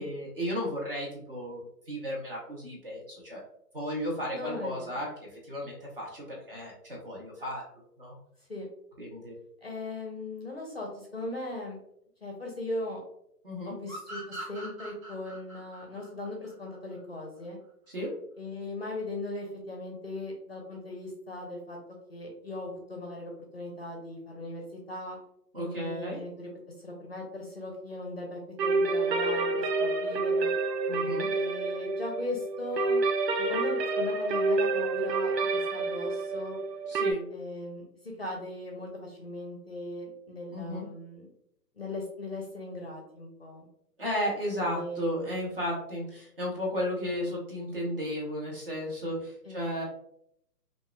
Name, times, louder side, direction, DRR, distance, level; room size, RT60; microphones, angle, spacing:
voice 1, 0.0-1.6 1.9-3.4 3.7-7.6 8.0-8.2 9.0-9.3 13.4-13.8 17.9-18.1 25.5-26.2 30.9-31.3 36.9-37.3 40.5-40.9 44.0-49.8, equal, 35° right, -3 dB, 0.8 m, -34 dB
voice 2, 4.3-5.0 8.5-8.7 9.6-11.8 12.2-13.0 13.6-17.6 18.4-21.8 22.1-25.2 25.6-26.5 26.8-30.5 31.3-33.0 33.4-36.6 37.3-41.3 41.7-43.7 44.5-45.4 49.4-49.7, left 2 dB, 40° left, 0 dB, 0.5 m, -38 dB
sound 1, 13.9-17.2, right 1 dB, 55° right, 1.5 m, -43 dB
sound 2, 28.6-37.1, right 3 dB, 90° right, 0.6 m, -28 dB
3.7 x 2.4 x 2.2 m, 0.74 s
hypercardioid pair, 165°, 48 cm